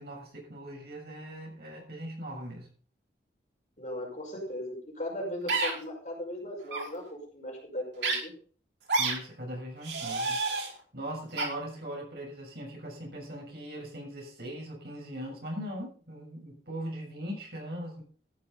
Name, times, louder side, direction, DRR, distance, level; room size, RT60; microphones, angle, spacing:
voice 1, 0.0-2.7 9.0-10.4 10.9-18.0, equal, 60° right, 0 dB, 6.9 m, -40 dB
voice 2, 3.8-8.3, left 1 dB, 40° left, 0 dB, 5.5 m, -38 dB
sound 1, 5.5-5.7 6.6-6.8 8.0-8.2 8.9-9.1 9.8-10.7 11.4-11.5, right 3 dB, 85° right, 5.3 m, -28 dB
14.0 x 11.0 x 4.0 m, 0.42 s
head